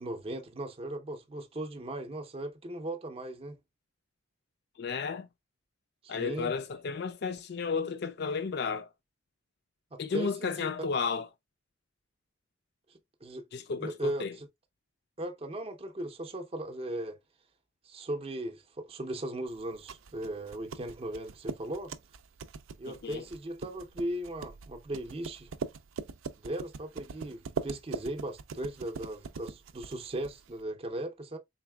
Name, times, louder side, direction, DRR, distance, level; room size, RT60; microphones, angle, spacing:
voice 1, 0.0-3.6 6.0-6.5 9.9-10.9 12.9-13.5 13.8-14.5 15.2-17.2 17.8-21.9 22.8-25.5 26.4-31.4, right 1 dB, 30° right, 0.5 m, -38 dB
voice 2, 4.8-5.3 6.1-8.9 10.0-11.3 13.5-14.3 22.9-23.2, left 5 dB, 55° left, 0.4 m, -33 dB
sound 1, 19.6-30.6, right 5 dB, 90° right, 0.4 m, -42 dB
4.0 x 3.4 x 2.2 m
head